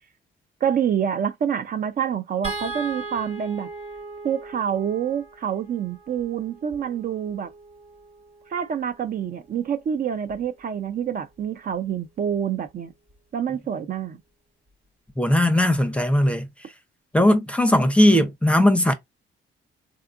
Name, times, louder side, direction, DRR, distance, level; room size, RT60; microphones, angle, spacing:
voice 1, 0.6-3.7 4.2-7.5 8.5-12.9 13.3-14.2, right 8 dB, 45° right, 0.5 m, -27 dB
sound 1, 2.4-8.8 10.3-10.5 10.8-11.0, right 3 dB, 30° right, 1.1 m, -38 dB
voice 2, 15.2-16.5 17.1-18.9, left 1 dB, 5° left, 0.6 m, -18 dB
3.5 x 2.4 x 2.4 m
cardioid pair, 90°, 20 cm